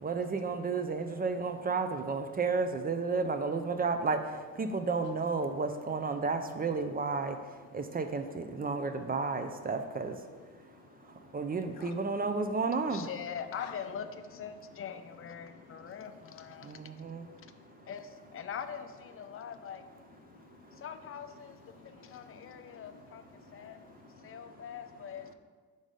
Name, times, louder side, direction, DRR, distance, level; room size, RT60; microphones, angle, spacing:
voice 1, 0.0-4.2 4.6-7.4 7.7-10.2 11.3-13.1 16.7-17.2, right 4 dB, 25° right, 8 dB, 0.4 m, -32 dB
voice 2, 12.9-16.7 17.9-19.8 20.7-21.6 21.8-23.8 24.2-25.3, left 7 dB, 35° left, 9 dB, 0.5 m, -43 dB
voice 3, 17.3-17.8 20.3-20.8 21.8-22.9 23.4-24.4, left 9 dB, 90° left, 7 dB, 0.5 m, -53 dB
5.4 x 3.8 x 4.9 m, 1.5 s
supercardioid pair, 70°, 36 cm